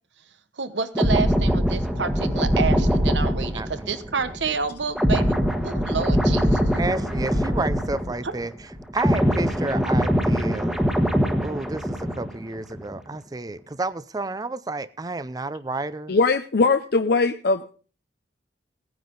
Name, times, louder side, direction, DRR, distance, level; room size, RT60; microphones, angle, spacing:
voice 1, 0.6-6.6, right 5 dB, 85° right, 11 dB, 1.1 m, -29 dB
sound 1, 0.9-8.5 8.7-12.4 12.7-13.0, equal, 5° right, 1.2 m, -23 dB
voice 2, 3.5-3.9 4.2-4.3 6.8-8.5 8.9-10.8 11.4-16.1, right 2 dB, 20° right, 15 dB, 0.5 m, -31 dB
voice 3, 16.1-17.7, left 3 dB, 60° left, 8 dB, 0.6 m, -20 dB
17.5 x 9.5 x 3.9 m, 0.39 s
head